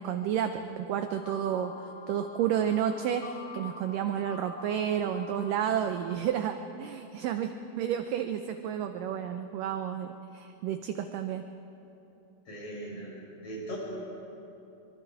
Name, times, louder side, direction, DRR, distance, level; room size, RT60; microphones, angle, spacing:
voice 1, 0.0-11.4, right 9 dB, 80° right, 7 dB, 1.9 m, -31 dB
sound 1, 1.1-6.2, left 4 dB, 70° left, 2.8 m, -46 dB
voice 2, 12.5-13.1 13.4-13.8, right 1 dB, 35° left, -5 dB, 7.2 m, -39 dB
25.0 x 23.0 x 4.8 m, 3.0 s
omnidirectional pair, 4.6 m